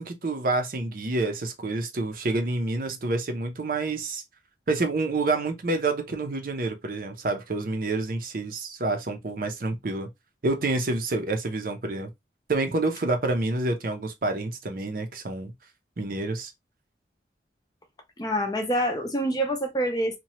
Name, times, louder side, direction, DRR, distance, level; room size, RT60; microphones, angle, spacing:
voice 1, 0.0-4.2 4.7-10.1 10.4-12.1 12.5-15.5 16.0-16.5, right 2 dB, 50° right, 0.6 m, -28 dB
voice 2, 18.2-20.2, equal, 20° left, 0.5 m, -26 dB
2.8 x 2.2 x 2.9 m
head